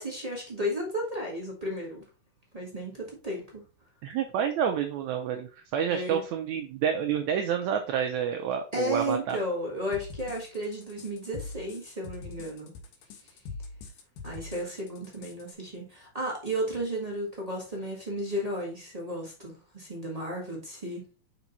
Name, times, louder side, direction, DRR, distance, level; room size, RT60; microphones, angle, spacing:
voice 1, 0.0-2.0 2.5-3.6 5.9-6.2 8.7-12.7 14.2-21.0, equal, 20° right, -3 dB, 1.2 m, -33 dB
voice 2, 4.0-9.4, right 8 dB, 75° right, 5 dB, 1.8 m, -29 dB
sound 1, 9.9-15.5, left 4 dB, 85° left, 2.8 m, -43 dB
5.9 x 4.9 x 4.0 m, 0.35 s
omnidirectional pair, 3.6 m